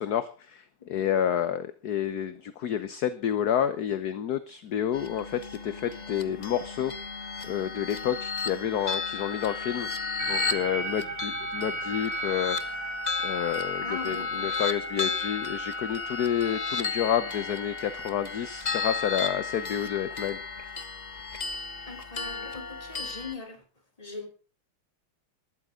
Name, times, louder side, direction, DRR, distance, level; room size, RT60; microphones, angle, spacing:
voice 1, 0.0-6.9 7.4-9.9 10.3-13.0 13.2-20.7, left 9 dB, 55° left, 12 dB, 1.2 m, -29 dB
sound 1, 4.9-23.3, left 4 dB, 30° left, 0.8 m, -34 dB
sound 2, 10.2-20.8, right 5 dB, 75° right, 2.6 m, -40 dB
voice 2, 13.8-14.5 21.9-23.6 24.0-24.3, left 3 dB, 15° left, 4 dB, 3.4 m, -40 dB
19.5 x 13.5 x 3.8 m, 0.36 s
omnidirectional pair, 2.4 m